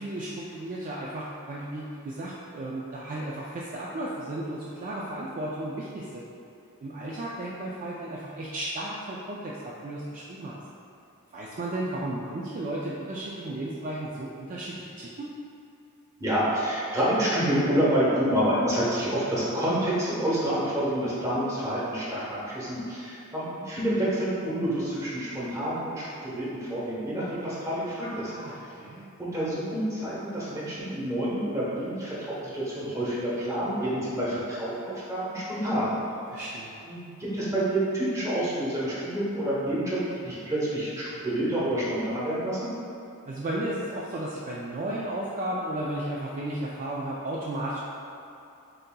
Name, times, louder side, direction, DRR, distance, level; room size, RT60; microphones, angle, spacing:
voice 1, 0.0-6.2 6.8-10.6 11.3-15.3 28.3-29.1 36.3-36.8 43.3-47.8, right 1 dB, 35° right, -5 dB, 0.3 m, -34 dB
voice 2, 16.2-28.3 29.2-35.9 36.3-36.4 36.8-42.6, right 1 dB, 15° right, -9 dB, 1.0 m, -28 dB
7.5 x 2.7 x 2.2 m, 2.7 s
head